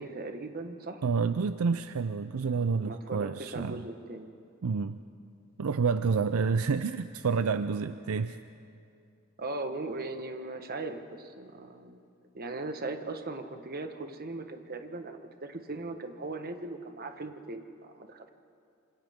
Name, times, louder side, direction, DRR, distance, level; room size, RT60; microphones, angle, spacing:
voice 1, 0.0-1.0 2.8-4.3 9.4-12.0 12.3-18.3, right 2 dB, 45° right, 6 dB, 1.3 m, -39 dB
voice 2, 1.0-3.8 4.6-5.0 5.6-8.4, right 5 dB, 75° right, 11 dB, 0.5 m, -29 dB
27.0 x 26.5 x 3.7 m, 2.5 s
head